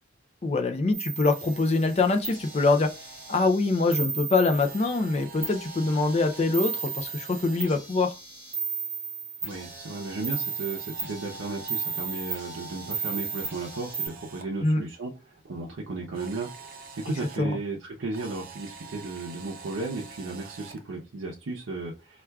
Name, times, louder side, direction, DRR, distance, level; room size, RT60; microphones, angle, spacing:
voice 1, 0.4-2.9 3.3-8.1 14.6-14.8 17.4-17.6, left 3 dB, 30° left, 0.4 m, -24 dB
sound 1, 0.9-1.8 2.2-5.1 5.4-14.1, right 6 dB, 10° right, 1.3 m, -35 dB
Camera, 1.2-3.4 4.5-7.8 9.5-14.4 16.1-17.4 18.1-20.8, right 4 dB, 45° right, 0.5 m, -46 dB
voice 2, 9.4-22.2, right 3 dB, 90° right, 0.6 m, -35 dB
4.5 x 2.3 x 2.3 m
head